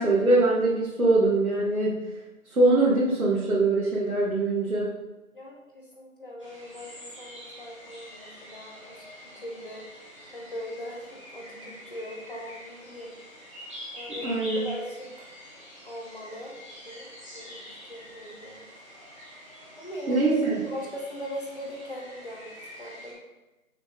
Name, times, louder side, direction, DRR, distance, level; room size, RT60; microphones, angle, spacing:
voice 1, 0.0-2.0 2.5-4.9 14.2-14.7 20.1-20.5, right 2 dB, 85° right, -6 dB, 1.5 m, -23 dB
voice 2, 5.3-9.1 9.3-9.8 10.3-13.1 13.9-15.4 15.8-16.5 16.8-17.1 17.3-18.7 19.8-20.3 20.7-23.2, equal, 40° left, -1 dB, 1.1 m, -40 dB
sound 1, 6.4-23.1, equal, 20° right, 1.1 m, -46 dB
6.3 x 4.2 x 3.6 m, 1.1 s
figure-of-eight pair, 175°, 42 cm